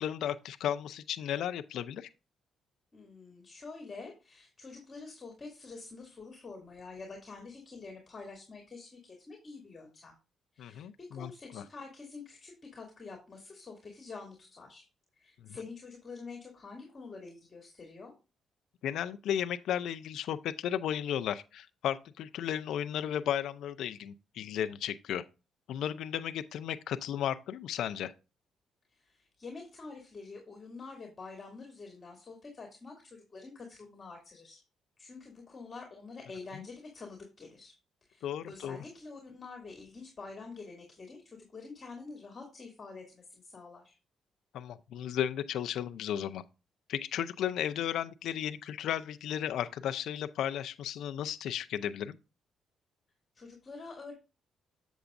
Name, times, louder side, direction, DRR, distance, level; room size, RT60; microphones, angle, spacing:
voice 1, 0.0-2.1 10.6-11.6 15.4-15.5 18.8-25.2 25.7-28.1 36.5-36.6 38.2-38.8 44.5-46.4 46.9-52.2, left 10 dB, 80° left, 0.5 m, -34 dB
voice 2, 2.9-10.1 10.5-14.8 15.2-18.1 28.9-34.6 35.0-37.7 38.1-43.9 53.3-54.1, left 4 dB, 35° left, 2.7 m, -47 dB
7.9 x 7.1 x 2.6 m
cardioid pair, 90°, 0 cm